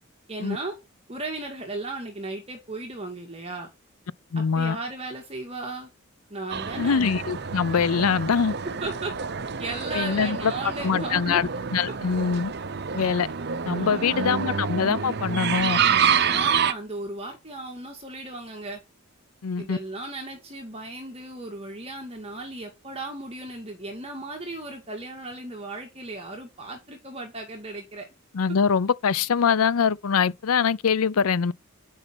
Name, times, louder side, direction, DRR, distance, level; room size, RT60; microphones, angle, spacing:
voice 1, 0.3-0.8 1.1-3.7 4.4-5.9 6.3-7.0 8.8-9.1 9.6-11.4 13.8-14.5 16.3-18.8 19.6-28.1, right 2 dB, 30° right, 2.0 m, -36 dB
voice 2, 4.3-4.8 6.8-8.5 9.9-10.5 10.8-12.5 12.9-13.3 13.6-15.8 19.4-19.8 28.3-31.5, left 6 dB, 85° left, 0.5 m, -23 dB
sound 1, 6.5-16.7, right 7 dB, 50° right, 0.8 m, -27 dB
9.8 x 5.6 x 6.1 m
head